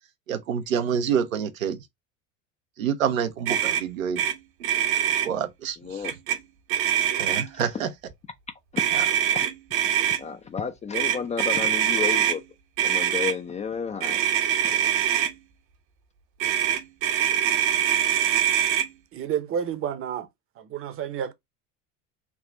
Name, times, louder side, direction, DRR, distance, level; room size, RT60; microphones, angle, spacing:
voice 1, 0.3-1.8 2.8-4.2 5.2-5.8 7.2-7.9 8.9-9.0, right 8 dB, 90° right, 0.7 m, -27 dB
Motor vehicle (road), 3.5-3.8 4.2-4.3 4.6-5.3 6.0-6.4 6.7-7.6 8.8-10.2 10.9-12.4 12.8-13.3 14.0-15.3 16.4-18.9, right 10 dB, 70° right, 1.0 m, -23 dB
voice 2, 5.8-6.1 7.5-7.6 8.7-8.8 9.3-9.5 10.2-12.4 12.8-14.2 14.6-14.8, left 6 dB, 20° left, 0.3 m, -31 dB
voice 3, 19.1-20.3 20.6-21.3, right 9 dB, 35° right, 0.7 m, -30 dB
3.6 x 2.4 x 3.8 m
hypercardioid pair, 80°, 39 cm